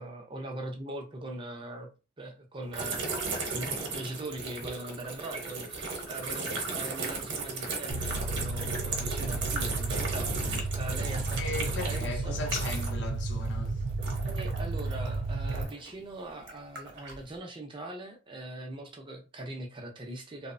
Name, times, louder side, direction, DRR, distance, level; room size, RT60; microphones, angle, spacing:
voice 1, 0.0-1.9 2.2-3.1 3.5-12.4 14.2-20.5, right 1 dB, 25° right, 0.5 m, -41 dB
sound 1, 2.7-13.1 13.4-15.9 16.4-17.2, right 3 dB, 60° right, 0.8 m, -36 dB
sound 2, 7.9-15.7, right 3 dB, 80° right, 0.4 m, -33 dB
voice 2, 11.4-13.9, left 3 dB, 60° left, 0.6 m, -37 dB
2.9 x 2.0 x 2.5 m
head